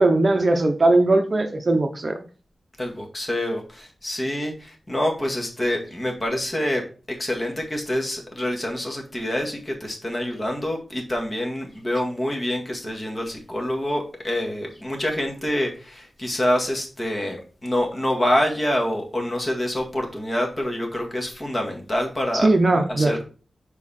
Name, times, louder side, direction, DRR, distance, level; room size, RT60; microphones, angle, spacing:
voice 1, 0.0-2.2 22.3-23.2, right 2 dB, 40° right, 6 dB, 0.8 m, -19 dB
voice 2, 2.8-23.2, left 1 dB, 25° left, 1 dB, 1.9 m, -26 dB
6.9 x 4.8 x 4.2 m, 0.37 s
wide cardioid pair, 115°, 0 cm